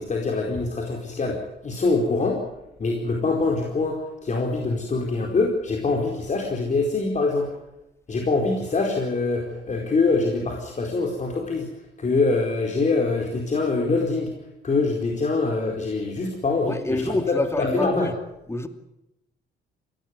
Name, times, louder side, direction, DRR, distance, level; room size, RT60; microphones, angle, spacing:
voice 1, 0.0-2.4 2.8-7.5 8.1-11.7 12.0-14.3 14.6-18.1, left 3 dB, 35° left, 1 dB, 4.5 m, -24 dB
voice 2, 16.7-18.2 18.5-18.7, left 2 dB, 15° left, 8 dB, 2.5 m, -26 dB
22.5 x 17.5 x 9.8 m, 0.88 s
cardioid pair, 90°, 20 cm